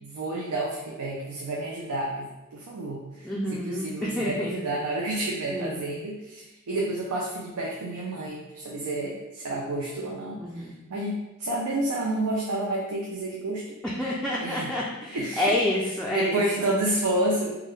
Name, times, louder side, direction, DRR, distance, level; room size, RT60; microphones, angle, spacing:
voice 1, 0.0-13.8 14.4-14.7 15.1-15.5 16.1-17.6, right 1 dB, 85° right, -2 dB, 0.5 m, -30 dB
voice 2, 3.2-4.5 5.5-5.8 10.4-10.8 14.0-16.7, left 1 dB, 5° left, -6 dB, 0.3 m, -28 dB
3.5 x 2.2 x 3.1 m, 0.99 s
head